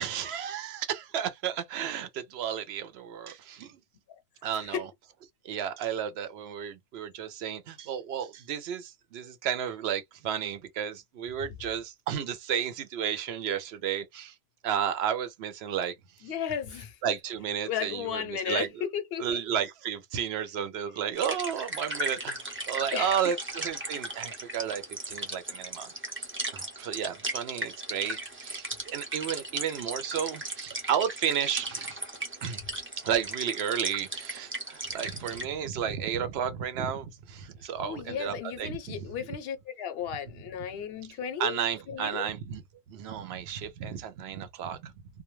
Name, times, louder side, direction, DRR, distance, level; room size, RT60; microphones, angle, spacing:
voice 1, 0.0-3.8 4.4-4.9 5.4-14.3 14.6-15.9 17.0-18.8 19.2-22.4 22.7-26.3 26.5-32.0 32.4-32.6 33.0-39.1 41.4-42.6 42.9-44.9, right 8 dB, 80° right, 0.8 m, -32 dB
voice 2, 4.5-4.8 16.2-16.9 17.7-19.4 22.9-23.1 37.8-41.6 41.9-42.3, left 8 dB, 75° left, 0.8 m, -34 dB
sound 1, 21.2-35.4, right 1 dB, 15° right, 0.4 m, -37 dB
2.2 x 2.1 x 3.0 m
omnidirectional pair, 1.0 m